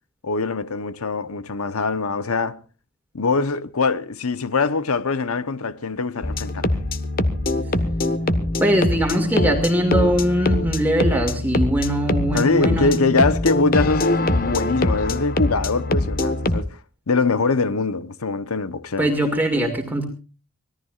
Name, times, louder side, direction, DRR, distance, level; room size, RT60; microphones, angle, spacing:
voice 1, 0.2-2.6 3.1-6.7 12.3-16.8 17.1-19.1, left 4 dB, 90° left, 1.0 m, -23 dB
sound 1, 6.2-16.6, left 1 dB, 40° left, 1.3 m, -23 dB
voice 2, 8.6-13.0 19.0-20.0, equal, 10° right, 2.2 m, -21 dB
25.0 x 18.0 x 2.4 m
head